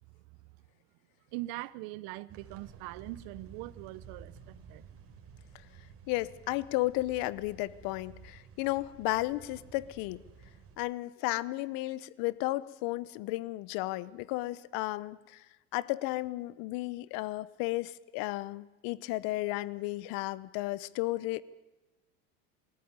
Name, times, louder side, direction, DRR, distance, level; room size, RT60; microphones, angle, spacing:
voice 1, 0.1-0.5 1.3-4.9, right 18 dB, 70° right, 0.9 m, -42 dB
sound 1, 2.3-10.8, right 6 dB, 35° right, 3.7 m, -53 dB
voice 2, 6.1-10.2 10.8-15.4 15.7-21.4, left 19 dB, 65° left, 0.9 m, -33 dB
23.0 x 14.0 x 9.6 m
supercardioid pair, 110°, 37 cm